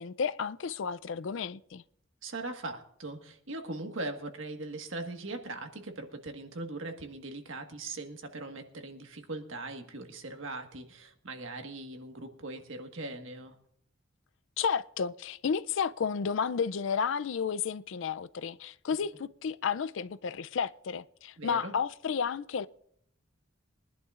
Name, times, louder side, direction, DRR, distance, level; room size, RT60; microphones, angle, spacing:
voice 1, 0.0-1.8 14.6-22.7, left 6 dB, 65° left, 0.4 m, -32 dB
voice 2, 2.2-13.6 21.4-21.7, right 2 dB, 70° right, 1.5 m, -40 dB
23.0 x 11.0 x 2.5 m
head